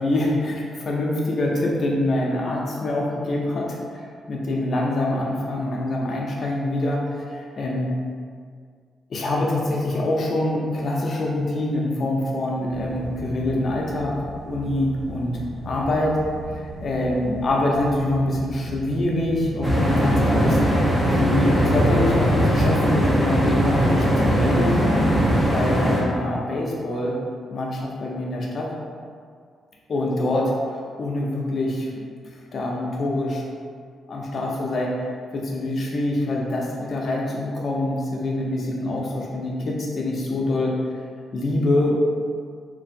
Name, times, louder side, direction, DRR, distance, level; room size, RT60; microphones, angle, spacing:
voice 1, 0.0-7.9 9.1-14.2 14.4-15.3 15.6-16.2 16.5-20.8 21.2-24.8 25.5-27.1 27.5-28.7 29.9-30.5 31.0-31.9 32.5-33.4 34.1-35.0 35.3-40.8 41.3-42.0, left 1 dB, 50° left, -2 dB, 0.6 m, -25 dB
sound 1, 12.7-23.5, right 1 dB, 65° right, 0.4 m, -37 dB
sound 2, 19.6-26.0, equal, 5° right, 0.7 m, -20 dB
2.9 x 2.5 x 2.7 m, 2.1 s
cardioid pair, 100°, 0 cm